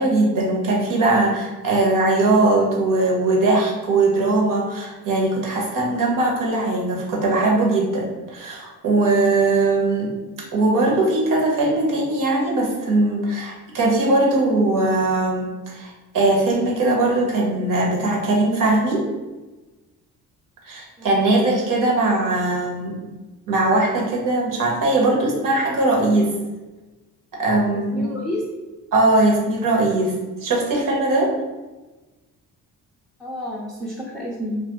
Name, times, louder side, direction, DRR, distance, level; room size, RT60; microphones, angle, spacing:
voice 1, 0.0-10.1 10.5-19.0 20.6-23.0 23.5-26.3 27.4-28.1 28.9-31.3, right 2 dB, 65° right, -2 dB, 0.9 m, -20 dB
voice 2, 27.7-28.4 33.2-34.6, left 1 dB, ahead, -6 dB, 0.5 m, -30 dB
2.3 x 2.2 x 2.9 m, 1.2 s
supercardioid pair, 65°, 35 cm